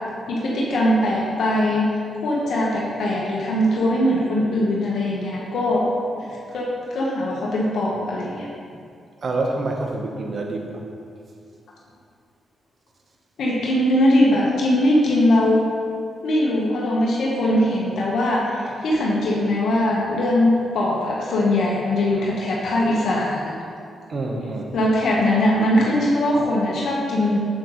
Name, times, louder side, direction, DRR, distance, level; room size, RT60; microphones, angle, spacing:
voice 1, 0.3-1.9 2.1-5.8 6.2-6.3 6.5-8.5 13.4-15.7 16.2-23.5 24.7-27.4, left 1 dB, 75° left, -4 dB, 1.3 m, -21 dB
voice 2, 9.2-10.8 24.1-24.7, right 2 dB, 50° right, 2 dB, 1.1 m, -27 dB
7.9 x 7.8 x 3.2 m, 2.4 s
cardioid pair, 85°, 0 cm